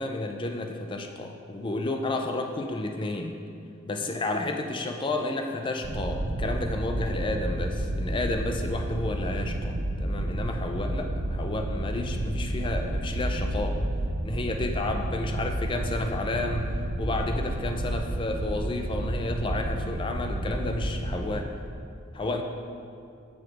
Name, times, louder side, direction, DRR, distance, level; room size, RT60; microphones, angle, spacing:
voice 1, 0.0-3.4 3.8-13.8 14.2-16.7 17.0-21.5 22.1-22.4, left 2 dB, 25° left, 4 dB, 0.4 m, -31 dB
sound 1, 5.8-21.5, right 1 dB, 45° right, 0.4 m, -31 dB
7.3 x 4.9 x 4.6 m, 2.4 s
head